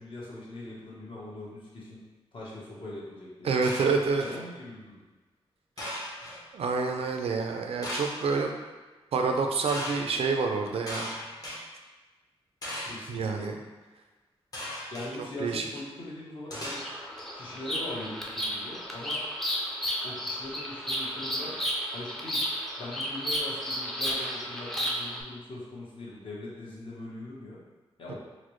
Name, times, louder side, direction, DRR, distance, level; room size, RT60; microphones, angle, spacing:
voice 1, 0.0-2.0 2.3-3.5 4.2-5.0 12.8-13.5 14.9-16.8 17.3-19.2 20.0-21.5 21.9-22.4 22.8-27.6 28.0-28.1, left 1 dB, 55° left, -6 dB, 1.0 m, -41 dB
voice 2, 3.4-4.2 6.5-8.5 9.1-11.1 13.1-13.5 15.4-15.7 28.1-28.2, right 4 dB, 70° right, 3 dB, 0.4 m, -27 dB
sound 1, 3.6-4.4 5.8-6.4 7.8-8.4 9.7-10.0 10.9-11.6 12.6-13.1 14.5-15.1 16.5-17.2, equal, 35° left, 0.8 m, -37 dB
Bird vocalization bird call bird song, 16.7-25.2, equal, 5° left, 0.4 m, -33 dB
4.1 x 2.1 x 3.0 m, 1.2 s
wide cardioid pair, 135°, 10 cm